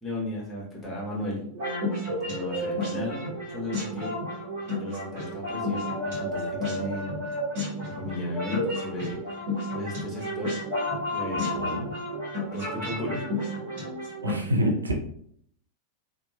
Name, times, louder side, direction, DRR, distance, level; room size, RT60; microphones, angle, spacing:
voice 1, 0.0-1.4 2.2-3.2 3.5-4.1 4.7-7.2 7.8-9.2 9.7-10.6 11.1-11.6 12.5-13.3, left 1 dB, 10° left, -3 dB, 1.1 m, -35 dB
sound 1, 1.5-14.3, left 1 dB, 45° right, 1.2 m, -31 dB
voice 2, 11.3-11.9 14.2-14.9, equal, 75° right, 2 dB, 0.4 m, -27 dB
2.8 x 2.3 x 2.2 m, 0.66 s
figure-of-eight pair, 90°, 0 cm